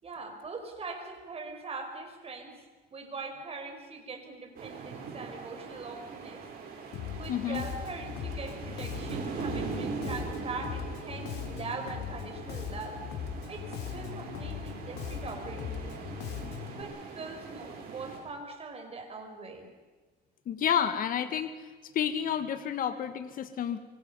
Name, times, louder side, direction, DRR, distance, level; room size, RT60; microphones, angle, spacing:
voice 1, 0.0-2.6 2.9-6.4 7.2-13.0 13.5-16.2 16.8-19.7, right 3 dB, 35° right, 5 dB, 4.8 m, -42 dB
sound 1, 4.5-18.2, right 5 dB, 65° right, 6.7 m, -41 dB
Bass guitar, 6.9-16.8, left 9 dB, 80° left, 2.6 m, -40 dB
voice 2, 7.3-7.6 20.4-23.8, left 9 dB, 55° left, 9 dB, 1.5 m, -30 dB
25.5 x 24.0 x 5.5 m, 1.3 s
cardioid pair, 110°, 17 cm